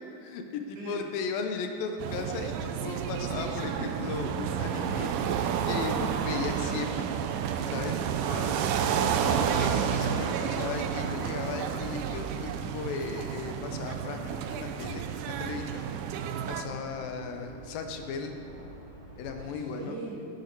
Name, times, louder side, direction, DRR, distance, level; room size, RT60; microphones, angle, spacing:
voice 1, 0.2-5.1 5.7-7.1 7.7-8.0 9.4-15.9 16.5-18.3 19.2-20.0, left 5 dB, 80° left, 5 dB, 2.6 m, -36 dB
sound 1, 2.0-16.6, right 8 dB, 85° right, 1.8 m, -30 dB
sound 2, 3.2-19.3, right 3 dB, 20° right, 2.3 m, -46 dB
voice 2, 8.2-8.5 8.9-9.5 17.1-17.4 19.4-20.3, right 2 dB, 60° right, -4 dB, 3.2 m, -39 dB
13.5 x 8.8 x 4.6 m, 2.6 s
omnidirectional pair, 4.2 m